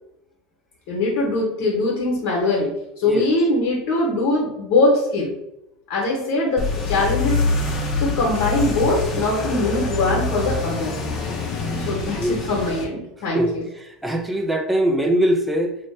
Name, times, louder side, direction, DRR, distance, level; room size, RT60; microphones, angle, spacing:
voice 1, 0.9-2.7 3.0-5.3 5.9-7.4 8.0-10.9 11.9-13.7, left 2 dB, 65° left, -3 dB, 0.9 m, -22 dB
sound 1, 6.6-12.8, left 3 dB, 40° left, 0.7 m, -25 dB
voice 2, 13.3-15.8, equal, 5° right, 4 dB, 0.5 m, -22 dB
2.8 x 2.1 x 3.2 m, 0.84 s
hypercardioid pair, 95°, 0 cm